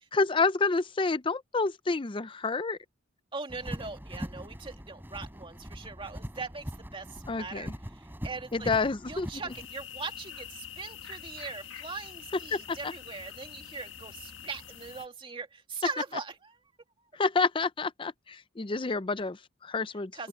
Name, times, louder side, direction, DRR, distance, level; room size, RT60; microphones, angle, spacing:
voice 1, 0.0-2.8 7.3-7.7 8.5-9.3 12.5-12.9 17.1-20.3, left 4 dB, 25° left, 0.5 m, -29 dB
voice 2, 3.3-8.7 9.1-16.6 20.1-20.3, right 4 dB, 25° right, 2.2 m, -41 dB
sound 1, 3.5-9.7, equal, 10° right, 4.1 m, -41 dB
sound 2, 9.5-15.1, left 8 dB, 70° left, 1.7 m, -45 dB
open air
head